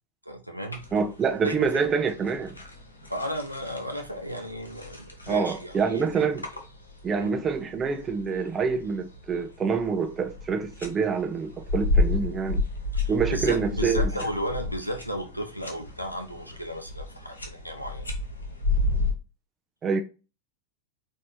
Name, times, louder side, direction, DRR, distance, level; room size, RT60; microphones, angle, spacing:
voice 1, 0.3-0.9 1.4-1.9 3.1-6.3 7.1-7.3 12.9-18.1, equal, 90° right, 0.8 m, -34 dB
sound 1, 0.7-19.1, left 2 dB, 80° left, 1.1 m, -32 dB
voice 2, 0.9-2.6 5.3-6.4 7.0-12.6 13.1-14.1 19.8-20.0, right 5 dB, 20° right, 0.6 m, -26 dB
4.2 x 2.9 x 4.2 m
figure-of-eight pair, 90°, 0 cm